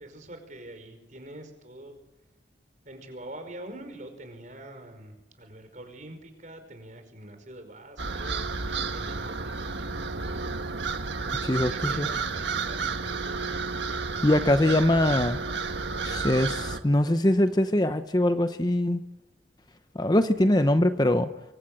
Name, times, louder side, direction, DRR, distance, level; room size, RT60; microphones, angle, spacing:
voice 1, 0.0-2.0 2.8-10.6 11.2-13.5, right 1 dB, 45° right, 7 dB, 5.2 m, -45 dB
sound 1, 8.0-16.8, right 4 dB, 80° right, 1.5 m, -31 dB
voice 2, 11.4-12.1 14.2-15.4 16.0-19.0 19.9-21.3, left 1 dB, 20° left, 9 dB, 0.8 m, -23 dB
24.5 x 23.5 x 8.8 m, 1.0 s
head